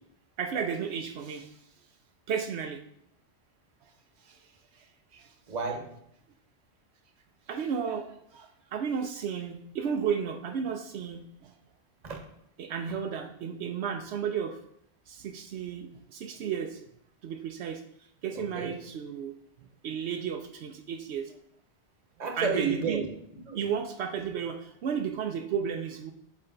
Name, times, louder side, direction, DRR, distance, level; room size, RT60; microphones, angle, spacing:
voice 1, 0.4-1.5 2.3-2.8 4.2-4.5 4.7-4.9 5.1-5.3 7.5-11.5 12.6-14.6 15.1-16.8 17.2-17.8 18.2-19.4 19.8-21.4 22.4-23.0 23.5-26.1, right 7 dB, 80° right, 5 dB, 0.9 m, -33 dB
voice 2, 5.5-6.0 12.0-12.3 18.3-18.8 22.2-23.7, right 5 dB, 40° right, 3 dB, 1.0 m, -32 dB
8.6 x 3.3 x 3.8 m, 0.72 s
omnidirectional pair, 1.1 m